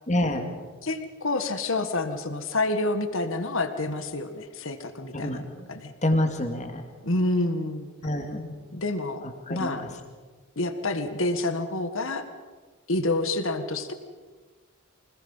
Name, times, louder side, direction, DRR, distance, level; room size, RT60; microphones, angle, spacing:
voice 1, 0.1-0.5 5.1-5.4 6.0-6.8 8.0-8.5 9.2-9.8, left 1 dB, 35° left, 5 dB, 2.2 m, -27 dB
voice 2, 0.8-5.4 5.7-5.9 7.0-7.9 8.7-9.2 9.5-9.9 10.5-12.2 12.9-13.9, left 2 dB, 65° left, 8 dB, 1.6 m, -28 dB
25.5 x 20.0 x 5.7 m, 1.4 s
head